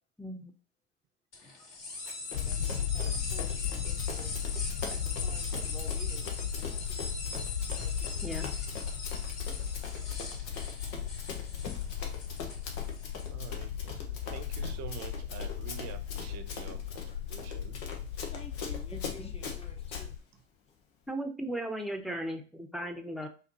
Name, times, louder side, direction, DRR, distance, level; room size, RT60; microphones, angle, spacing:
voice 1, 0.2-0.5 8.2-8.5 18.9-19.3 21.1-23.3, right 1 dB, ahead, 5 dB, 0.9 m, -37 dB
sound 1, 1.3-13.3, left 3 dB, 45° left, 2.4 m, -41 dB
Run, 2.1-20.1, left 5 dB, 60° left, 1.2 m, -43 dB
sound 2, 2.3-20.2, left 8 dB, 85° left, 0.5 m, -36 dB
voice 2, 2.3-4.4 4.9-8.5 10.8-11.9 12.9-13.1 16.9-17.1 18.2-20.2, left 2 dB, 15° left, 3 dB, 1.2 m, -53 dB
voice 3, 13.3-17.8, right 9 dB, 50° right, 9 dB, 0.9 m, -47 dB
5.7 x 2.9 x 3.0 m, 0.37 s
hypercardioid pair, 70°, 34 cm